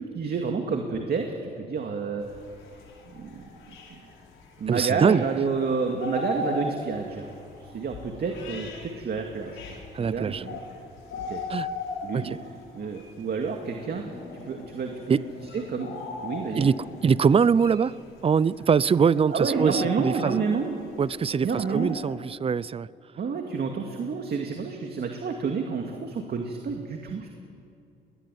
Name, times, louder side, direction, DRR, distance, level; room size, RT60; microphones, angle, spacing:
voice 1, 0.0-2.3 3.1-3.8 4.6-7.3 7.6-10.6 11.3-11.4 12.0-12.3 12.7-14.1 14.3-15.2 15.5-16.7 19.3-20.7 21.4-22.0 23.2-27.3, right 5 dB, 55° right, 3 dB, 2.3 m, -29 dB
sound 1, 2.2-22.1, left 3 dB, 75° left, 4.8 m, -39 dB
voice 2, 4.7-5.2 9.9-10.4 11.5-11.7 12.1-12.4 15.1-15.2 16.6-18.0 18.2-20.4 21.0-22.9, right 6 dB, 30° right, 21 dB, 0.5 m, -23 dB
21.0 x 20.5 x 9.3 m, 2.5 s
cardioid pair, 90°, 20 cm